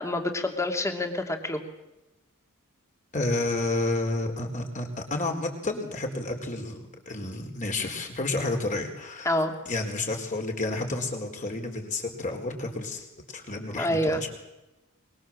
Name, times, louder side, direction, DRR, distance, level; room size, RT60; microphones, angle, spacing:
voice 1, 0.0-1.6 9.2-9.5 13.8-14.3, left 1 dB, 15° left, 4 dB, 2.6 m, -27 dB
voice 2, 3.1-9.4 9.7-13.1 13.3-14.3, left 2 dB, 35° left, 3 dB, 4.3 m, -30 dB
23.5 x 22.5 x 7.6 m, 0.97 s
head